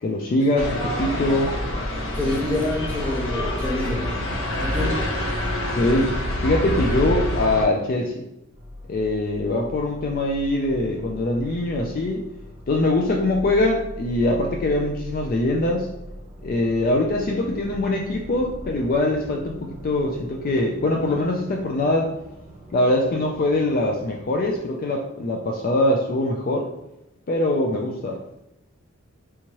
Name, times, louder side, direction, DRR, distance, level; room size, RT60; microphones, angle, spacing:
voice 1, 0.0-1.5 5.7-8.1 8.9-12.3 12.7-15.9 16.4-22.1 22.7-26.7 27.3-28.2, left 1 dB, 40° left, 0 dB, 0.3 m, -23 dB
sound 1, 0.6-7.6, left 1 dB, 70° left, 0.9 m, -26 dB
voice 2, 2.1-4.3 4.6-5.0, left 1 dB, 10° left, -5 dB, 0.9 m, -27 dB
sound 2, 8.5-24.6, equal, 35° right, 0.8 m, -40 dB
3.5 x 2.9 x 2.9 m, 0.88 s
head